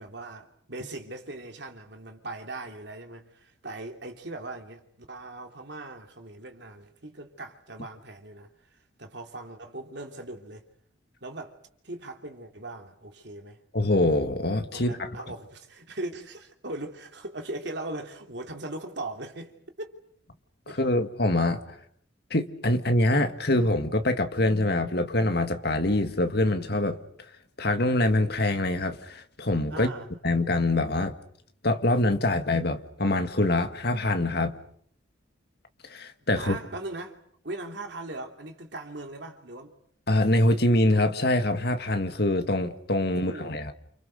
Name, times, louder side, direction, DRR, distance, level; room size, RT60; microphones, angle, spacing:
voice 1, 0.0-8.5 9.0-10.6 11.2-11.5 11.8-13.6 14.7-20.0 20.7-21.0 29.7-30.1 36.3-37.2 37.4-39.7 43.1-43.6, right 2 dB, 60° right, 3.3 m, -39 dB
voice 2, 13.7-15.1 20.7-21.8 22.3-27.0 27.6-29.9 30.2-31.1 31.6-34.5 35.9-36.6 40.1-43.7, left 1 dB, 55° left, 1.9 m, -24 dB
29.0 x 26.0 x 6.6 m
head